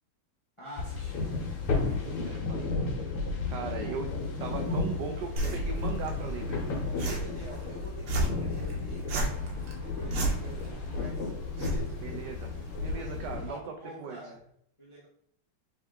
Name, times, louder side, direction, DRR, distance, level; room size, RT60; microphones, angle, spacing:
voice 1, 0.6-1.5 1.8-2.4 3.4-4.0 4.3-4.8 6.8-12.0 12.8-14.4 14.8-15.1, left 1 dB, 45° left, -6 dB, 0.3 m, -47 dB
sound 1, 0.8-13.5, left 3 dB, 90° left, 1.9 m, -33 dB
sound 2, 1.0-13.7, right 1 dB, 20° left, 1.5 m, -54 dB
voice 2, 2.2-2.6 3.5-4.1 4.4-6.6 12.0-12.5 12.8-13.6 14.0-14.2, right 6 dB, 80° right, 3 dB, 0.9 m, -38 dB
sound 3, 5.4-13.4, right 3 dB, 65° right, 1.4 m, -36 dB
3.6 x 3.6 x 3.5 m, 0.69 s
omnidirectional pair, 2.4 m